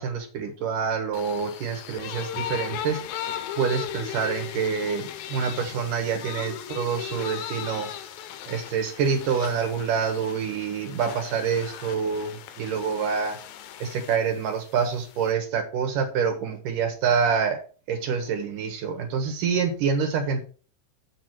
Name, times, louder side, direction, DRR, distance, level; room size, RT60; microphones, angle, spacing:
voice 1, 0.0-3.0 3.6-7.9 8.5-13.4 13.8-17.6 17.9-20.4, right 6 dB, 70° right, 4 dB, 2.9 m, -26 dB
sound 1, 1.1-15.3, left 10 dB, 80° left, 2.7 m, -37 dB
7.5 x 7.3 x 4.6 m, 0.39 s
omnidirectional pair, 4.1 m